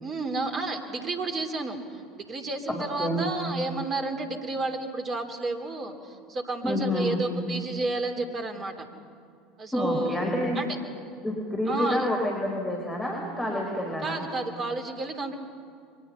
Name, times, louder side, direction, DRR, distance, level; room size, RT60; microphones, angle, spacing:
voice 1, 0.0-8.9 9.6-10.2 10.5-10.7 11.7-12.0 14.0-15.4, right 2 dB, 30° right, 5 dB, 3.0 m, -31 dB
voice 2, 2.7-3.3 6.6-7.2 9.7-10.6 11.2-14.2, left 1 dB, 10° left, -1 dB, 4.7 m, -28 dB
29.5 x 23.5 x 5.7 m, 2.4 s
figure-of-eight pair, 75°, 0 cm